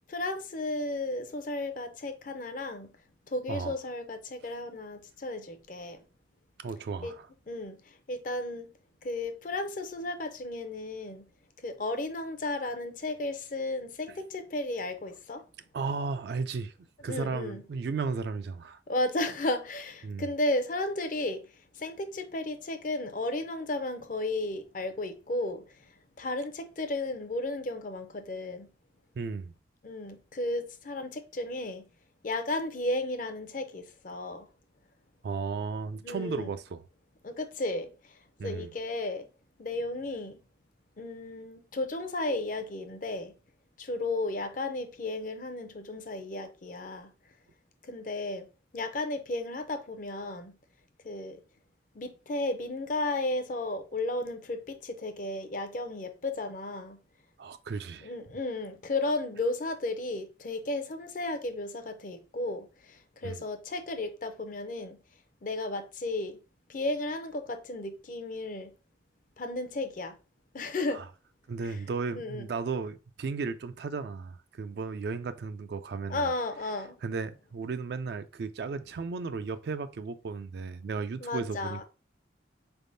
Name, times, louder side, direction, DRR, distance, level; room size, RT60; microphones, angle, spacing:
voice 1, 0.1-2.9 3.3-6.0 7.0-7.1 7.5-8.7 9.0-11.3 11.6-15.4 17.1-17.6 18.9-21.5 21.7-25.6 26.2-28.7 29.8-31.9 32.2-34.5 36.0-36.5 37.2-38.1 38.4-39.3 39.6-40.4 41.0-43.3 43.8-47.1 47.8-48.5 48.7-50.6 51.0-51.4 51.9-57.0 58.0-65.0 65.4-66.4 66.7-68.7 69.4-70.1 70.5-71.1 71.6-71.8 72.1-72.5 76.1-76.9 81.2-81.8, left 2 dB, 45° left, 0.5 m, -34 dB
voice 2, 6.6-7.3 15.7-16.7 17.0-18.8 20.0-20.3 29.2-29.5 35.2-36.8 38.4-38.7 57.4-58.1 63.2-63.4 70.9-71.1 71.5-76.3 77.0-81.8, right 4 dB, 60° right, 0.3 m, -35 dB
4.1 x 3.4 x 2.6 m
head